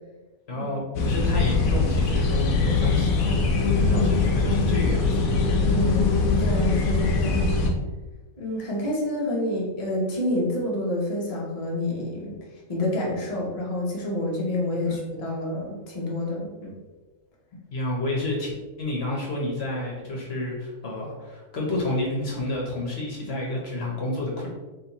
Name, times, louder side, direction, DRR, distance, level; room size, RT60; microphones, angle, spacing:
voice 1, 0.5-3.3 3.8-5.1 6.8-6.9 14.9-15.0 17.7-24.5, left 1 dB, 55° left, -2 dB, 1.1 m, -30 dB
sound 1, 0.9-7.7, left 3 dB, 85° left, 1.1 m, -22 dB
voice 2, 3.8-4.3 5.6-7.4 8.4-12.4 12.7-16.8, left 1 dB, 30° left, -4 dB, 0.8 m, -28 dB
4.2 x 3.1 x 2.9 m, 1.2 s
omnidirectional pair, 1.4 m